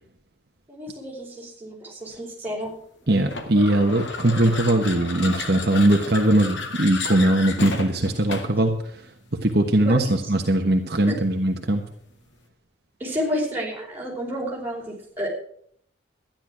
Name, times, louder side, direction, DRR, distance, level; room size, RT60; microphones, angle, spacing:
voice 1, 0.7-2.7 9.8-10.1 11.1-11.2 13.0-15.3, equal, 10° right, -4 dB, 4.5 m, -30 dB
voice 2, 3.1-9.0 9.3-11.9, right 1 dB, 55° right, 3 dB, 1.3 m, -20 dB
Rolling Creak, 3.3-8.7, left 3 dB, 75° left, 2.0 m, -33 dB
13.0 x 10.5 x 6.2 m, 0.64 s
head